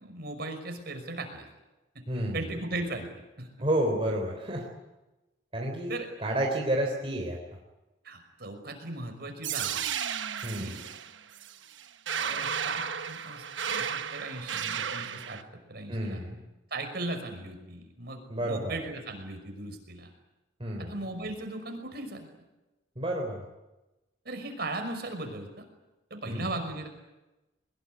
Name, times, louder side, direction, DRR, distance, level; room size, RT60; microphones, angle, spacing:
voice 1, 0.0-1.5 1.9-2.0 2.3-3.1 3.4-3.5 5.9-6.1 8.0-9.9 10.6-10.8 12.1-15.4 15.7-16.2 16.7-20.1 20.8-22.3 24.2-25.6 26.1-26.9, right 2 dB, 55° right, 5 dB, 5.7 m, -37 dB
voice 2, 2.1-2.4 3.6-4.7 5.5-5.9 6.2-7.4 10.4-10.8 15.9-16.4 18.3-18.8 20.6-20.9 23.0-23.4 26.3-26.5, right 1 dB, 30° right, 0 dB, 3.6 m, -30 dB
sound 1, 9.4-15.4, right 8 dB, 80° right, 1.1 m, -33 dB
22.5 x 21.0 x 9.6 m, 1.0 s
head